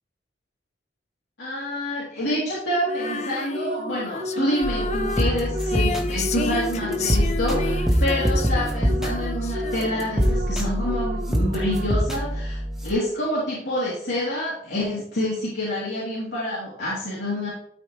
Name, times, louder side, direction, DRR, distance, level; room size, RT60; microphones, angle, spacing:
voice 1, 1.4-17.5, left 1 dB, 85° left, -9 dB, 3.1 m, -27 dB
sound 1, 2.8-12.2, equal, 50° right, 0.8 m, -34 dB
Female singing, 2.9-10.2, left 3 dB, 40° left, 0.5 m, -31 dB
sound 2, 4.6-12.9, equal, 5° right, 1.1 m, -25 dB
12.5 x 4.8 x 3.1 m, 0.70 s
head